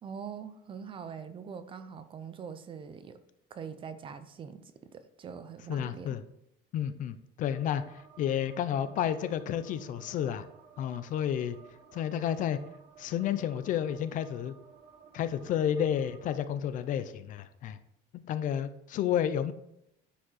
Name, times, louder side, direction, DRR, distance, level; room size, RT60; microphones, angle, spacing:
voice 1, 0.0-3.2 3.5-6.2, right 6 dB, 30° right, 11 dB, 0.5 m, -43 dB
voice 2, 5.7-6.2 6.7-10.5 10.8-11.6 11.9-12.6 13.0-14.5 15.1-17.8 18.3-19.5, left 9 dB, 45° left, 12 dB, 0.5 m, -31 dB
sound 1, 7.5-16.4, right 6 dB, 45° right, 1.3 m, -55 dB
9.8 x 5.2 x 4.0 m, 0.80 s
cardioid pair, 175°, 19 cm